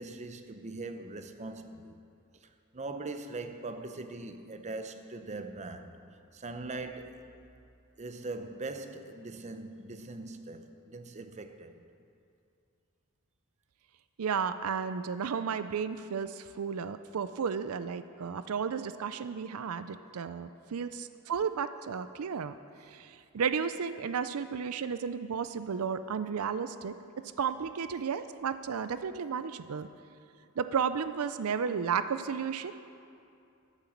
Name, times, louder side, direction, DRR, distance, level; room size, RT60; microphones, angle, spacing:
voice 1, 0.0-2.0 2.4-2.5 2.7-6.0 6.3-7.3 8.0-11.8, right 3 dB, 35° right, 0.7 m, -41 dB
voice 2, 14.2-22.5 22.9-26.9 27.4-29.9 30.6-32.7, right 6 dB, 85° right, 0.5 m, -33 dB
12.5 x 8.9 x 7.3 m
head